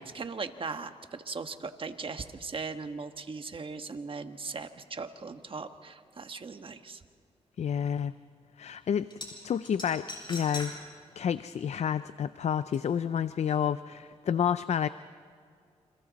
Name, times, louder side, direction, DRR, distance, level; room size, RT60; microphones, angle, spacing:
voice 1, 0.0-7.0, right 4 dB, 45° right, 8 dB, 1.4 m, -39 dB
voice 2, 7.6-8.1 8.6-9.1 9.4-10.7 11.2-14.9, left 8 dB, 65° left, 14 dB, 0.5 m, -29 dB
sound 1, 9.1-9.3 9.6-10.7 11.1-11.2 12.7-12.8, left 2 dB, 40° left, 7.1 m, -39 dB
29.0 x 27.5 x 4.1 m, 2.2 s
cardioid pair, 70°, 12 cm